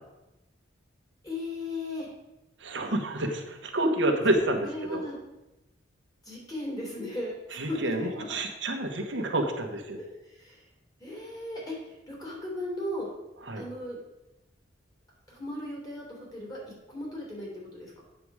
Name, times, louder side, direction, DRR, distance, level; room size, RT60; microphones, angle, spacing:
voice 1, 1.2-2.1 4.3-5.2 6.2-8.4 10.0-10.6 11.0-13.1 13.5-14.0 15.3-16.6 16.9-18.0, left 1 dB, 20° left, -3 dB, 3.1 m, -37 dB
voice 2, 2.6-5.0 7.5-10.0 13.5-13.6, right 1 dB, 80° right, 4 dB, 1.1 m, -28 dB
8.5 x 6.9 x 4.8 m, 0.96 s
head